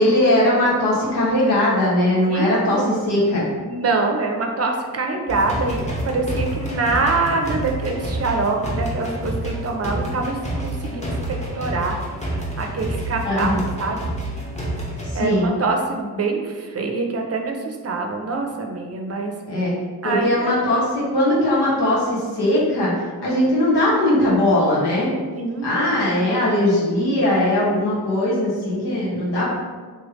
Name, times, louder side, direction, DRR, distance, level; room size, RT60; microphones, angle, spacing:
voice 1, 0.0-3.5 13.2-13.6 15.2-15.5 19.5-19.7 20.0-22.9 23.2-25.1 25.6-29.5, left 1 dB, 90° left, -7 dB, 1.5 m, -19 dB
voice 2, 2.2-3.0 3.6-12.0 12.6-14.0 15.1-19.3 20.0-20.5 23.2-23.7 25.3-26.2, right 3 dB, 40° right, 3 dB, 0.5 m, -25 dB
sound 1, 5.3-15.1, right 1 dB, 20° left, 0.9 m, -28 dB
3.3 x 3.2 x 3.0 m, 1.5 s
cardioid pair, 85°, 39 cm